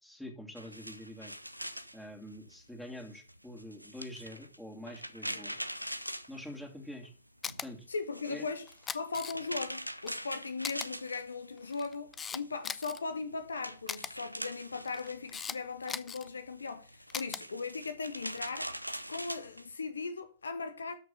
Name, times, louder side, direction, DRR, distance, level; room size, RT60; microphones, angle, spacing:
voice 1, 0.0-1.3 1.9-5.6 6.3-7.1 7.6-7.9 8.3-8.5, left 1 dB, 5° left, 2.8 m, -45 dB
sound 1, 0.6-7.1 7.4-11.8 12.1-19.7, equal, 90° right, 0.6 m, -43 dB
Camera, 7.4-7.7 8.7-9.6 10.1-10.2 10.6-10.9 11.6-13.0 13.9-14.1 14.8-15.6 15.9-16.3 17.1-17.4 18.3-18.6, left 6 dB, 20° left, 0.6 m, -39 dB
voice 2, 7.9-8.7 8.9-18.7 19.1-21.0, left 4 dB, 75° left, 1.0 m, -38 dB
13.0 x 5.8 x 5.5 m
figure-of-eight pair, 90°, 0 cm